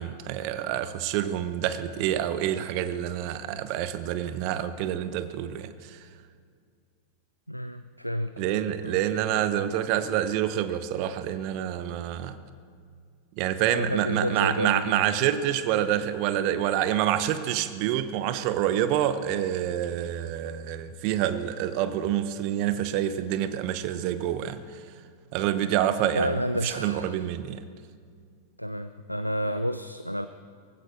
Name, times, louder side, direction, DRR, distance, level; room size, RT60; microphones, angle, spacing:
voice 1, 0.0-5.7 8.4-12.4 13.4-24.6 25.3-27.6, right 11 dB, 45° right, 12 dB, 0.9 m, -27 dB
voice 2, 7.5-8.5 8.8-9.0 13.6-15.0 26.1-27.3 28.6-30.3, equal, 90° left, 11 dB, 0.4 m, -30 dB
18.5 x 16.0 x 4.4 m, 2.1 s
figure-of-eight pair, 90°, 0 cm